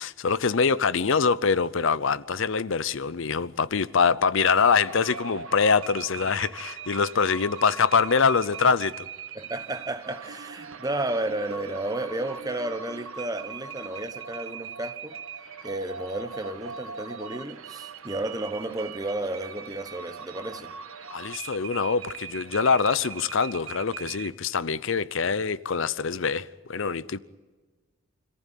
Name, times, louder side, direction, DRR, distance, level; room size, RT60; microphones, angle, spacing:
voice 1, 0.0-9.1 21.1-27.2, left 5 dB, 65° left, 0.6 m, -24 dB
sound 1, 4.4-24.3, right 6 dB, 80° right, 1.6 m, -40 dB
voice 2, 9.3-15.1 15.6-20.7, right 2 dB, 15° right, 1.0 m, -32 dB
26.0 x 15.0 x 9.2 m
head